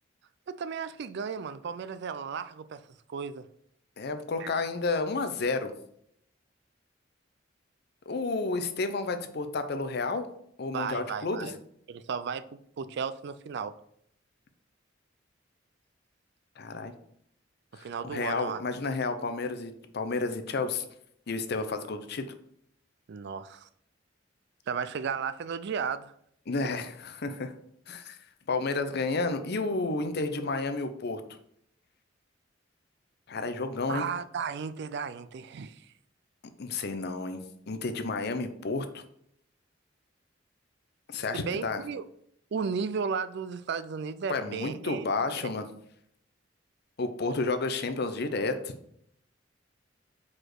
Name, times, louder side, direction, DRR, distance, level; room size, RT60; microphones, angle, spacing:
voice 1, 0.5-2.8 3.1-3.4 4.4-4.5 10.7-11.6 11.9-13.7 17.7-18.6 23.1-23.7 24.7-26.1 33.9-35.9 41.3-42.0 42.5-45.0, right 6 dB, 60° right, 0.4 m, -34 dB
voice 2, 4.0-5.7 8.1-10.3 10.6-11.5 16.6-16.9 17.7-20.8 21.3-22.3 26.5-27.5 27.9-28.2 28.5-31.2 33.3-34.0 36.6-37.4 37.7-39.0 41.1-41.8 44.3-45.7 47.0-48.7, left 3 dB, 60° left, 0.6 m, -31 dB
4.9 x 4.3 x 4.5 m
head